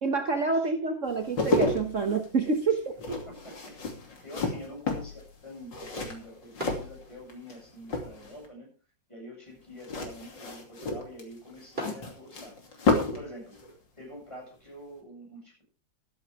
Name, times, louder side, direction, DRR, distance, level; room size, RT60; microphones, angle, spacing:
voice 1, 0.0-3.0, right 4 dB, 45° right, 5 dB, 1.3 m, -27 dB
sound 1, 1.1-7.6 7.8-8.5 9.8-13.3 13.5-13.7, left 2 dB, 75° left, 3.4 m, -31 dB
sound 2, 2.8-12.9, right 1 dB, 30° right, 5.9 m, -47 dB
voice 2, 3.3-3.9 4.2-8.7 9.1-12.6 13.1-13.6 14.0-15.6, equal, 15° left, -1 dB, 8.0 m, -46 dB
13.5 x 13.0 x 3.5 m, 0.36 s
omnidirectional pair, 2.0 m